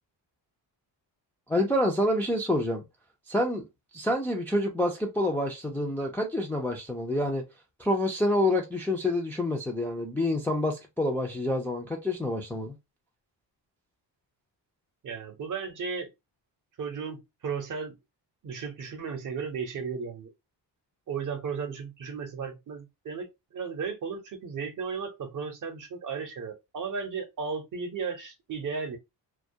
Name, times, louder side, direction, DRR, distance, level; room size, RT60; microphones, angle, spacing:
voice 1, 1.5-2.8 3.3-3.6 3.9-7.4 7.8-12.8, left 1 dB, 5° left, 0.3 m, -27 dB
voice 2, 15.0-16.1 16.8-18.0 18.4-20.3 21.1-29.0, right 5 dB, 45° right, 0.7 m, -35 dB
2.3 x 2.1 x 2.6 m
cardioid pair, 120°, 44 cm